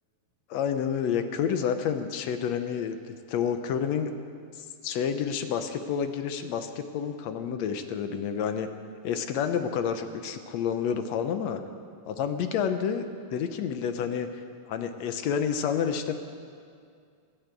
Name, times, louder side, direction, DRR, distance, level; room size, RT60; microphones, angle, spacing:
voice 1, 0.5-4.1 4.6-8.7 9.0-11.6 12.1-13.0 13.3-14.3 14.7-16.1, left 7 dB, 70° left, 8 dB, 1.9 m, -29 dB
16.5 x 10.5 x 8.1 m, 2.2 s
omnidirectional pair, 3.4 m